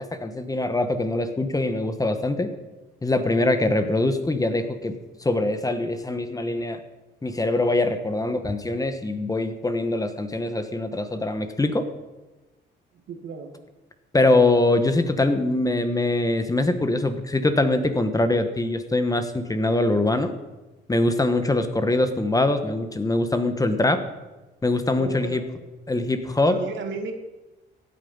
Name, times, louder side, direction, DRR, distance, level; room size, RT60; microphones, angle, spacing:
voice 1, 0.0-2.5 3.0-6.8 7.2-11.9 14.1-20.3 20.9-24.0 24.6-25.4 25.9-26.6, left 2 dB, 20° left, 9 dB, 1.3 m, -23 dB
voice 2, 13.1-13.5 25.0-25.4 26.5-27.1, right 5 dB, 70° right, 5 dB, 2.1 m, -34 dB
16.0 x 9.2 x 5.5 m, 1.1 s
cardioid pair, 90°, 20 cm